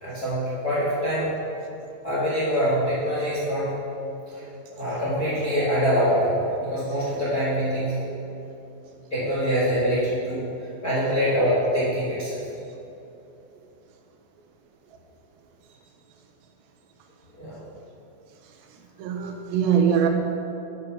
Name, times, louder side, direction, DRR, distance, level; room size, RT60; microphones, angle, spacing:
voice 1, 0.0-1.3 2.0-3.7 4.8-8.0 9.1-10.4 10.8-12.4 17.4-17.6, equal, 40° left, -9 dB, 1.3 m, -24 dB
voice 2, 19.0-20.1, right 7 dB, 80° right, 2 dB, 2.5 m, -22 dB
9.5 x 6.6 x 5.5 m, 2.9 s
omnidirectional pair, 4.4 m